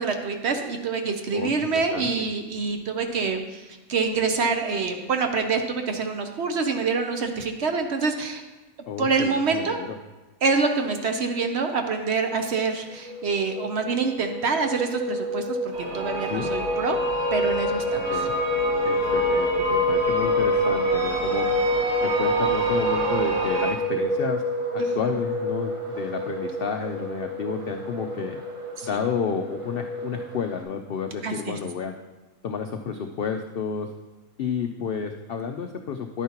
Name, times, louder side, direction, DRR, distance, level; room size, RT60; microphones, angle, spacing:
voice 1, 0.0-8.4 9.0-9.8 10.4-17.0 17.3-18.2 24.8-25.1 28.8-29.0 31.2-31.6, right 4 dB, 55° right, 5 dB, 0.9 m, -26 dB
voice 2, 1.3-2.2 8.9-10.0 16.2-16.5 18.1-18.3 18.8-21.5 22.0-24.4 24.7-28.4 28.8-31.9 32.4-33.9 34.4-36.2, left 6 dB, 75° left, 5 dB, 0.5 m, -31 dB
sound 1, 12.9-30.6, equal, 30° right, 0.7 m, -27 dB
sound 2, 15.7-23.7, right 2 dB, 75° right, 3.0 m, -29 dB
10.5 x 9.3 x 2.9 m, 1.1 s
omnidirectional pair, 1.5 m